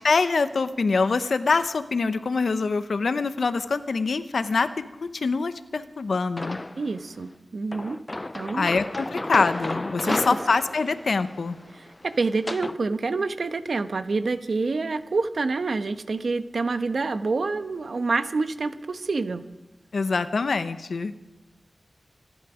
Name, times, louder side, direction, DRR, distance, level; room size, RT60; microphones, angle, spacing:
voice 1, 0.0-4.7 5.0-6.6 8.6-11.6 19.9-21.1, left 4 dB, 80° left, 11 dB, 0.9 m, -24 dB
sound 1, 6.4-7.0 7.7-12.8, left 2 dB, 30° left, 0.4 m, -33 dB
voice 2, 6.8-8.0 8.3-8.7 10.0-10.2 11.7-19.4, right 3 dB, 75° right, 10 dB, 1.0 m, -27 dB
26.0 x 11.0 x 5.1 m, 1.1 s
wide cardioid pair, 65°, 0 cm